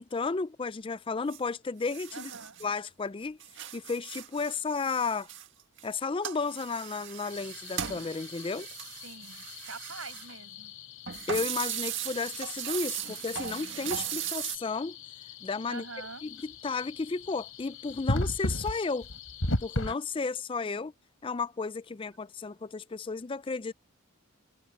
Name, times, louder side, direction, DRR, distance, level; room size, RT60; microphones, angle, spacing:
voice 1, 0.0-2.3 2.6-3.4 3.7-5.3 5.8-8.7 11.3-15.0 15.4-15.8 16.2-19.1 19.6-20.9 21.2-23.7, left 4 dB, 25° left, 0.4 m, -33 dB
sound 1, 1.3-1.4 1.9-2.9 3.2-5.9 6.2-10.3 11.1-14.6, right 10 dB, 60° right, 1.9 m, -38 dB
voice 2, 2.1-2.7 9.0-10.7 15.7-16.2 20.6-20.9, right 4 dB, 75° right, 6.1 m, -45 dB
sound 2, 7.3-19.9, left 1 dB, 75° left, 4.4 m, -38 dB
head